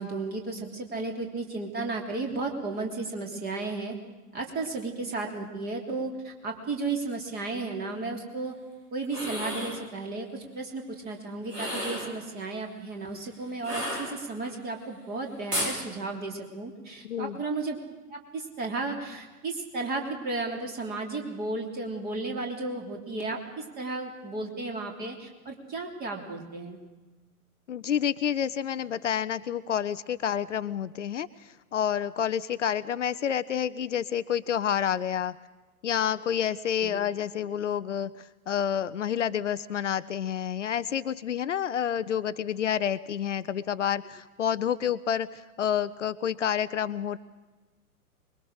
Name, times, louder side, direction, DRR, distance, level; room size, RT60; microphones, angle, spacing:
voice 1, 0.0-3.9 4.3-8.6 8.9-17.8 18.1-26.8 36.8-37.0, right 3 dB, 20° right, 2 dB, 3.3 m, -34 dB
sound 1, 9.0-9.8 11.4-12.2 13.6-14.5 15.5-15.8, equal, 80° right, 6.3 m, -32 dB
voice 2, 17.0-17.4 27.7-35.4 35.8-47.2, left 9 dB, 50° left, 15 dB, 0.8 m, -29 dB
24.5 x 21.5 x 6.5 m, 1.2 s
figure-of-eight pair, 115°, 46 cm